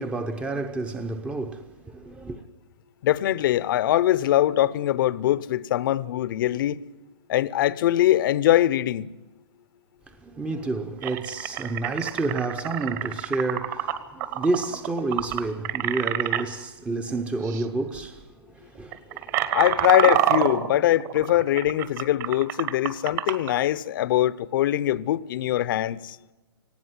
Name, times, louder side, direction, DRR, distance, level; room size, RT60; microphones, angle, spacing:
voice 1, 0.0-2.4 10.1-19.6, right 2 dB, 10° right, 0.8 m, -30 dB
voice 2, 3.0-6.8 7.3-9.1 19.5-26.2, left 13 dB, 50° left, 0.8 m, -22 dB
sound 1, 10.4-10.5 11.0-16.4 17.4-17.6 17.9-18.2 18.8-23.5, right 12 dB, 40° right, 1.7 m, -27 dB
19.0 x 16.5 x 9.7 m
hypercardioid pair, 145°, 14 cm